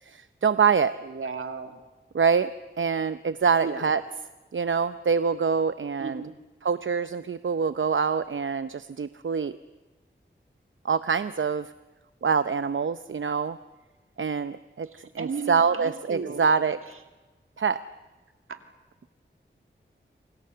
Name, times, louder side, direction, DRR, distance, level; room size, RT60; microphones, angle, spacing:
voice 1, 0.0-0.9 2.1-2.5 2.8-4.0 4.5-6.2 6.6-9.6 10.8-11.7 12.2-13.6 14.2-14.9 15.1-16.8 17.6-17.8, right 6 dB, 70° right, 12 dB, 0.7 m, -25 dB
voice 2, 1.0-1.8 3.6-3.9 6.0-6.4 14.9-16.5 18.5-18.6, right 5 dB, 85° right, 6 dB, 2.5 m, -35 dB
28.5 x 25.5 x 6.8 m, 1.2 s
cardioid pair, 45°, 21 cm